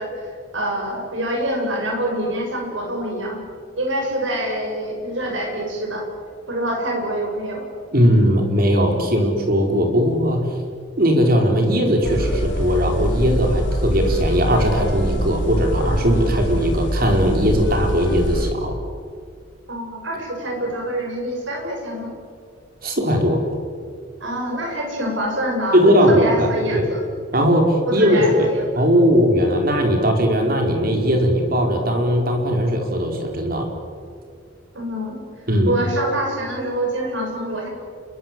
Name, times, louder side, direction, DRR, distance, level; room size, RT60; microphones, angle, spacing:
voice 1, 0.0-3.4 3.8-6.0 6.5-7.6 19.7-22.1 24.2-27.0 27.8-28.7 34.7-35.2 35.7-37.7, right 1 dB, 75° right, 1 dB, 7.6 m, -25 dB
voice 2, 7.9-10.5 11.0-18.8 22.8-23.4 25.7-26.9 27.3-28.5 28.7-33.7 35.5-35.7, equal, 50° right, 3 dB, 4.8 m, -18 dB
sound 1, 12.0-18.5, equal, 70° left, 2.9 m, -24 dB
28.5 x 23.0 x 7.9 m, 2.2 s
head